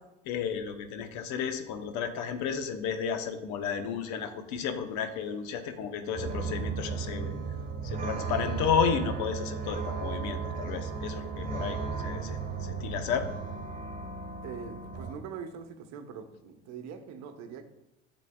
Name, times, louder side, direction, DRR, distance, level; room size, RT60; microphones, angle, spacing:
voice 1, 0.3-7.3 7.8-13.3, left 7 dB, 60° left, 8 dB, 1.0 m, -32 dB
sound 1, 6.1-15.1, right 5 dB, 25° right, 1.5 m, -35 dB
voice 2, 14.4-17.6, right 6 dB, 55° right, 7 dB, 1.0 m, -42 dB
12.0 x 4.1 x 2.3 m, 0.91 s
hypercardioid pair, 65°, 33 cm